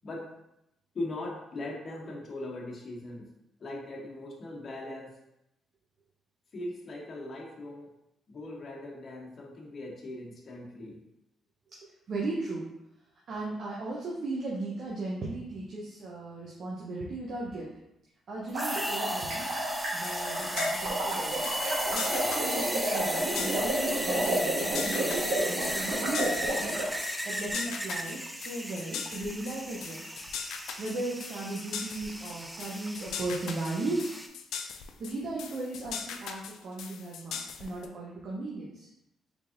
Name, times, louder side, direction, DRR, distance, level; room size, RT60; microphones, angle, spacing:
voice 1, 0.9-3.3 3.6-5.1 6.5-7.9 8.3-11.0, left 2 dB, 45° left, -1 dB, 0.9 m, -39 dB
voice 2, 12.1-12.7 13.3-17.7 18.3-19.5 19.9-21.5 21.9-26.4 27.2-30.1 30.8-34.1 35.0-38.9, right 2 dB, 55° right, -5 dB, 0.7 m, -36 dB
sound 1, 18.4-26.9, right 1 dB, 85° right, 1.2 m, -31 dB
sound 2, 18.5-34.3, equal, 5° right, 0.3 m, -36 dB
sound 3, 19.8-37.9, left 7 dB, 80° left, 0.3 m, -40 dB
3.4 x 3.3 x 2.5 m, 0.84 s
cardioid pair, 90°, 0 cm